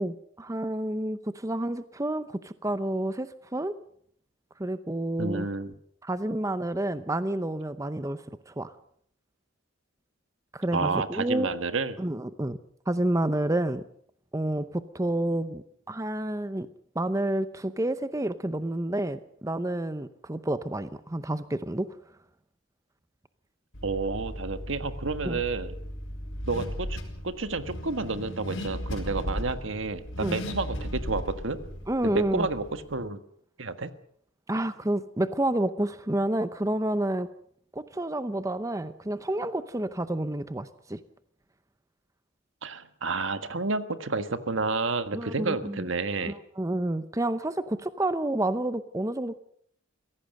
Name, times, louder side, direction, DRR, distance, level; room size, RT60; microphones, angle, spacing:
voice 1, 0.0-3.7 4.6-5.5 6.0-8.7 10.5-11.5 12.0-12.6 12.9-13.8 14.3-16.7 16.9-21.9 25.2-25.4 30.2-30.4 31.9-32.5 34.5-37.3 37.7-41.0 45.1-45.9 46.3-49.4, right 1 dB, 15° right, 12 dB, 0.7 m, -29 dB
voice 2, 5.2-5.7 10.7-12.0 23.8-25.7 26.5-27.0 27.2-31.6 32.0-33.2 33.6-33.9 42.6-46.4, right 3 dB, 70° right, 10 dB, 1.5 m, -30 dB
Car / Accelerating revving vroom, 23.7-32.9, equal, 70° left, 4.5 m, -36 dB
24.0 x 16.5 x 6.6 m, 0.64 s
head